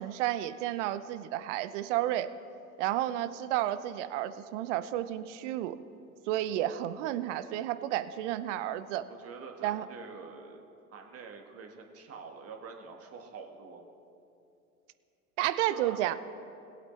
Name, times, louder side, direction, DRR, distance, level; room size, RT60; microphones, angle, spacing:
voice 1, 0.0-2.3 2.8-5.8 6.3-9.0 9.6-9.9 15.4-16.2, right 13 dB, 55° right, 13 dB, 0.7 m, -31 dB
voice 2, 9.1-10.6 10.9-13.8 15.7-16.0, right 5 dB, 30° right, 2 dB, 1.8 m, -46 dB
20.5 x 8.1 x 3.3 m, 2.7 s
figure-of-eight pair, 80°, 44 cm